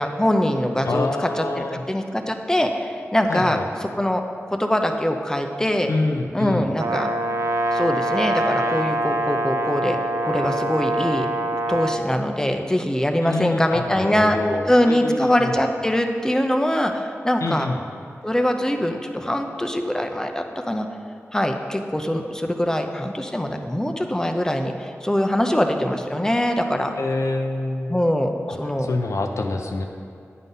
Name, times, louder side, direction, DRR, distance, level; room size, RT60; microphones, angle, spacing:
voice 1, 0.0-1.1 1.4-4.2 4.5-5.9 6.3-7.1 7.7-10.0 10.2-11.3 11.7-14.4 14.7-17.7 18.2-20.9 21.3-26.9 27.9-28.9, equal, 10° left, 4 dB, 0.6 m, -23 dB
voice 2, 0.8-1.8 3.3-3.7 5.9-6.7 13.2-15.5 17.4-17.8 27.0-28.0 28.5-29.8, left 2 dB, 70° left, 3 dB, 0.5 m, -26 dB
Brass instrument, 6.8-12.0, right 1 dB, 85° right, 0.5 m, -24 dB
9.4 x 3.9 x 5.4 m, 2.4 s
wide cardioid pair, 75°, 5 cm